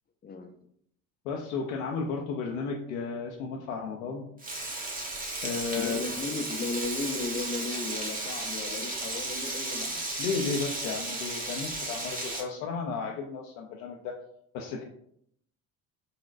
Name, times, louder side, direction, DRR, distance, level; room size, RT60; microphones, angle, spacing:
voice 1, 0.2-0.5 5.8-10.1, left 3 dB, 25° left, 5 dB, 0.4 m, -35 dB
voice 2, 1.2-4.2 5.4-6.0 10.2-14.1 14.5-14.8, left 5 dB, 80° left, 0 dB, 0.5 m, -33 dB
Frying (food), 4.4-12.4, right 2 dB, 20° right, 0.9 m, -34 dB
3.9 x 2.2 x 2.4 m, 0.69 s
hypercardioid pair, 70°, 41 cm